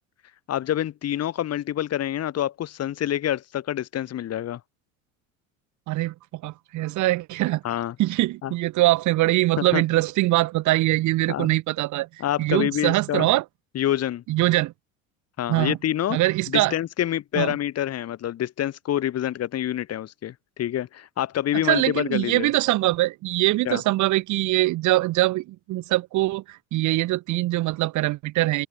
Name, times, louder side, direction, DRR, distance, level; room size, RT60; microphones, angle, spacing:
voice 1, 0.5-4.6 7.6-8.0 8.4-8.5 9.6-9.8 11.3-11.5 12.2-13.3 13.7-14.2 15.4-16.2 16.5-22.5 23.6-23.8, left 11 dB, 45° left, 4.1 m, -27 dB
voice 2, 5.9-7.6 8.0-12.1 12.4-13.4 14.3-14.7 15.5-15.8 16.1-16.7 17.4-17.5 21.6-28.7, right 17 dB, 55° right, 2.6 m, -23 dB
open air
hypercardioid pair, 80°, 35 cm